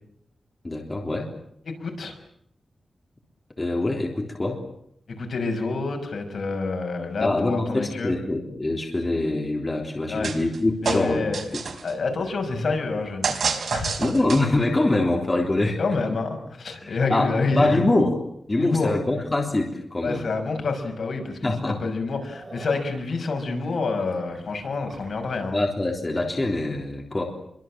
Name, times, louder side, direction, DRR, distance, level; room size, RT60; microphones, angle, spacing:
voice 1, 0.6-1.3 3.6-4.6 7.2-11.6 14.0-15.8 16.8-18.2 18.5-20.2 21.4-21.8 25.5-27.2, left 2 dB, 20° left, 1 dB, 3.7 m, -24 dB
voice 2, 1.7-2.2 5.1-8.1 10.1-10.3 10.8-11.4 11.8-13.4 13.7-14.0 15.8-17.8 18.6-19.0 20.0-25.6, left 3 dB, 60° left, 4 dB, 6.0 m, -27 dB
sound 1, 10.2-10.6 10.9-11.9 13.2-14.6, right 5 dB, 65° right, 4.2 m, -28 dB
sound 2, 20.2-20.3 20.8-20.9 21.2-21.4 21.7-25.5, right 2 dB, 30° right, 6.6 m, -47 dB
28.5 x 24.0 x 7.6 m, 0.71 s
wide cardioid pair, 145°, 0 cm